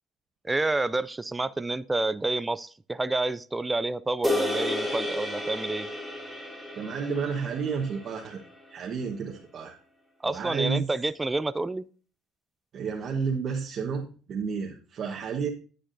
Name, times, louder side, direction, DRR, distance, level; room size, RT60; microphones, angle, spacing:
voice 1, 0.4-5.9 10.2-11.9, right 2 dB, 10° right, 14 dB, 0.3 m, -29 dB
sound 1, 4.2-8.7, left 1 dB, 5° left, 2.2 m, -32 dB
voice 2, 6.7-8.4 8.7-9.8 10.2-10.9 12.7-15.5, right 5 dB, 45° right, -1 dB, 1.2 m, -31 dB
10.0 x 8.2 x 2.6 m, 0.41 s
cardioid pair, 115°, 0 cm